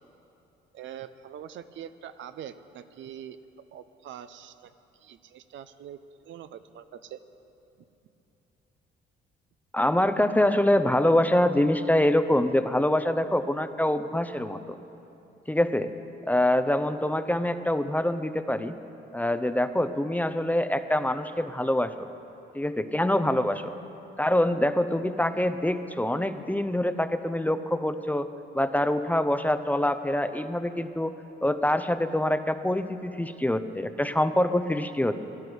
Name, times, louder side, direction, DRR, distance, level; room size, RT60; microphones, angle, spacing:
voice 1, 0.7-3.4 3.7-4.7 5.0-6.0 6.2-7.2, right 9 dB, 70° right, 11 dB, 0.7 m, -43 dB
voice 2, 9.7-14.8 15.5-15.9 16.3-18.7 19.1-22.1 22.5-23.7 24.2-28.3 28.5-31.1 31.4-35.1, left 1 dB, 10° left, 10 dB, 0.6 m, -25 dB
17.5 x 11.0 x 6.2 m, 3.0 s
cardioid pair, 90°, 20 cm